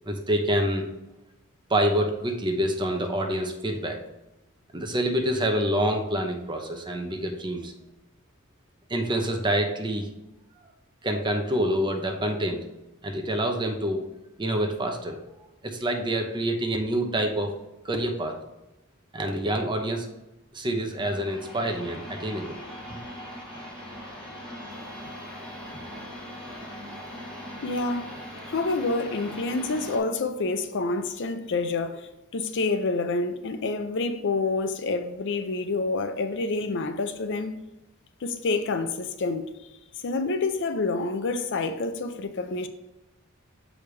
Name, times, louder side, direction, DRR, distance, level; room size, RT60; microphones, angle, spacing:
voice 1, 0.0-0.9 1.7-4.0 4.7-7.7 8.9-10.1 11.0-12.7 13.0-14.0 14.4-15.2 15.6-17.5 17.8-18.3 19.1-20.1 20.5-22.6 22.9-23.0, right 1 dB, 20° right, 0.8 m, -27 dB
sound 1, 20.9-30.0, equal, 5° left, 2.1 m, -40 dB
voice 2, 27.6-28.1 28.5-37.6 38.2-39.5 40.0-42.7, left 3 dB, 60° left, 0.6 m, -28 dB
6.7 x 5.0 x 3.3 m
head